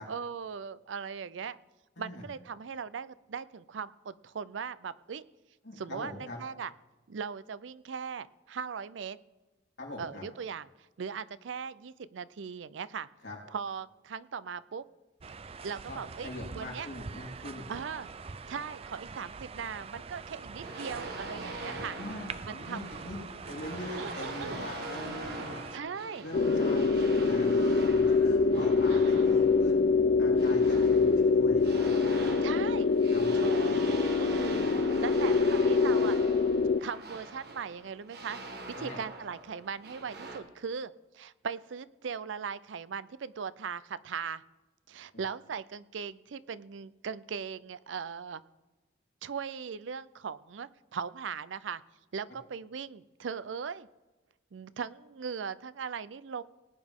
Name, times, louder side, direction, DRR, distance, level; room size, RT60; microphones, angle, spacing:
voice 1, 0.0-1.6 2.0-5.2 5.8-6.7 7.1-9.2 10.0-10.7 11.0-13.1 13.5-14.9 15.6-16.9 17.7-18.1 18.5-22.0 22.5-22.9 24.0-24.7 25.7-26.3 28.9-29.4 32.4-32.9 33.3-33.8 34.2-36.2 36.8-38.4 38.8-44.4 44.9-48.4 49.2-51.8 52.1-53.9 54.5-56.4, right 6 dB, 90° right, 17 dB, 0.5 m, -39 dB
voice 2, 5.6-6.4 9.8-10.2 13.2-13.4 15.9-17.7 21.6-22.3 22.5-23.2 23.5-25.6 26.2-29.8 30.2-31.7 33.1-33.5 38.7-39.0, left 1 dB, 70° left, -4 dB, 3.7 m, -42 dB
sound 1, 15.2-25.8, right 5 dB, 30° right, 0.4 m, -44 dB
sound 2, 20.6-40.4, right 2 dB, 60° right, 1.5 m, -42 dB
sound 3, 26.3-36.8, left 4 dB, 50° left, 0.3 m, -25 dB
19.0 x 9.4 x 3.6 m, 1.1 s
head